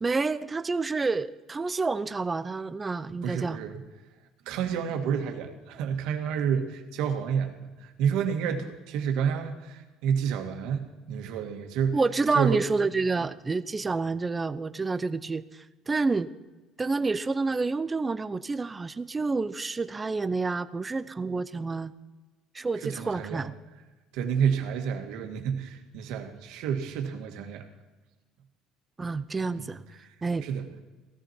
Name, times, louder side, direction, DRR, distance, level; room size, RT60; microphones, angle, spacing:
voice 1, 0.0-3.6 11.9-15.4 15.9-16.3 16.8-21.9 22.5-23.5 29.0-29.8 30.2-30.5, right 3 dB, 15° right, 14 dB, 0.6 m, -28 dB
voice 2, 3.2-3.8 4.5-12.0 12.3-12.7 22.8-23.5 24.1-27.6 29.6-29.7 30.4-30.7, right 7 dB, 75° right, 5 dB, 1.9 m, -29 dB
16.5 x 14.0 x 4.5 m, 1.2 s
cardioid pair, 135°, 0 cm